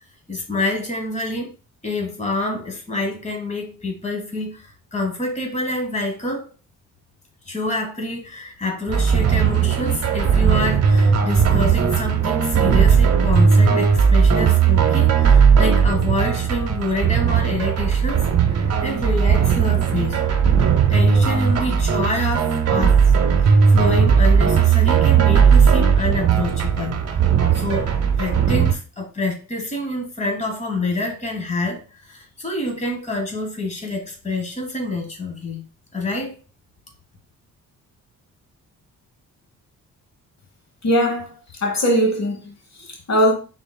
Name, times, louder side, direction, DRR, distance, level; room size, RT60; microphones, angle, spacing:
voice 1, 0.3-1.5 1.8-6.5 7.5-20.2 20.9-23.1 23.4-27.0 27.5-35.6 35.9-36.4, left 2 dB, 20° left, 1.2 m, -27 dB
sound 1, 8.9-28.7, right 6 dB, 50° right, 0.8 m, -17 dB
voice 2, 40.8-43.3, equal, 55° left, 1.0 m, -21 dB
5.1 x 3.9 x 2.2 m
cardioid pair, 110°, 33 cm